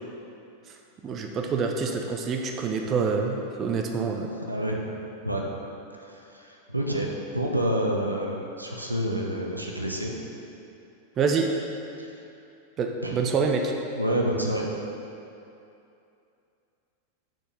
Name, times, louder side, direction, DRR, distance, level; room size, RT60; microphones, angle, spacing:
voice 1, 1.0-4.3 11.2-11.5 12.8-13.7, right 5 dB, 30° right, 3 dB, 0.4 m, -26 dB
voice 2, 4.5-4.8 5.2-5.4 6.1-10.1 12.0-12.1 13.0-13.1 13.9-14.6, right 1 dB, 85° right, -1 dB, 0.6 m, -28 dB
4.6 x 4.3 x 5.3 m, 2.7 s
figure-of-eight pair, 90°, 0 cm